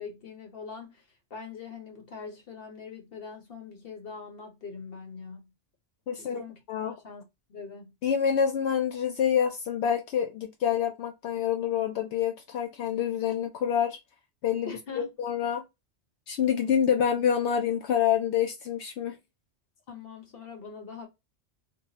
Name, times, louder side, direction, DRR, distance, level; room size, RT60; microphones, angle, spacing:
voice 1, 0.0-5.5 6.2-7.9 14.6-15.1 19.9-21.1, left 5 dB, 55° left, 1.1 m, -43 dB
voice 2, 6.1-6.4 6.7-6.9 8.0-14.0 14.4-15.6 16.3-19.2, left 8 dB, 75° left, 0.8 m, -27 dB
2.8 x 2.3 x 3.9 m
omnidirectional pair, 1.2 m